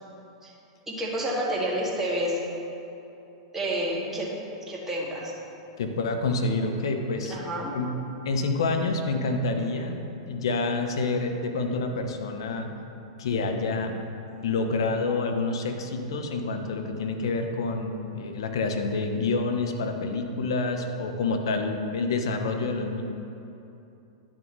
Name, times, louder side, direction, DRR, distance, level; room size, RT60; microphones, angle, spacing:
voice 1, 0.9-2.4 3.5-4.3 4.7-5.3 7.3-7.7, right 1 dB, 15° right, -5 dB, 2.1 m, -29 dB
voice 2, 5.8-7.4 7.7-7.9 8.2-10.0 10.3-12.7 13.2-13.9 14.4-23.0, left 3 dB, 70° left, 5 dB, 0.9 m, -28 dB
10.5 x 6.2 x 4.0 m, 2.9 s
hypercardioid pair, 100°, 3 cm